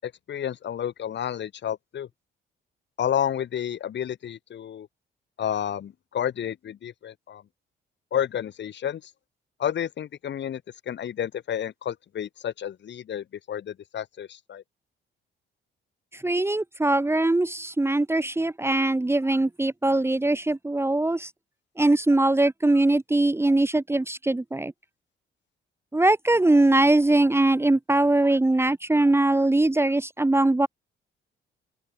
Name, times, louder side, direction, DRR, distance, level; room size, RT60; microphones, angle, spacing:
voice 1, 0.0-2.1 3.0-4.9 5.4-7.4 8.1-9.1 9.6-10.6 10.9-14.6, left 9 dB, 65° left, 7.6 m, -30 dB
voice 2, 16.1-21.3 21.8-24.7 25.9-30.7, right 2 dB, 10° right, 1.5 m, -21 dB
open air
cardioid pair, 90°, 20 cm